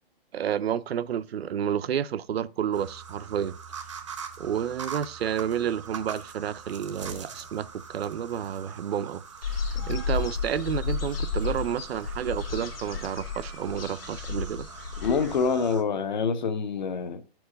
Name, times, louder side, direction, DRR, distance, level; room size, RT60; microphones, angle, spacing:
voice 1, 0.3-3.6 4.4-14.7, right 9 dB, 75° right, 0.5 m, -30 dB
sound 1, 2.7-15.8, right 6 dB, 30° right, 0.5 m, -43 dB
sound 2, 9.4-15.5, left 5 dB, 65° left, 1.3 m, -32 dB
voice 2, 15.0-17.2, left 5 dB, 50° left, 0.6 m, -26 dB
4.8 x 4.6 x 4.9 m
hypercardioid pair, 175°, 31 cm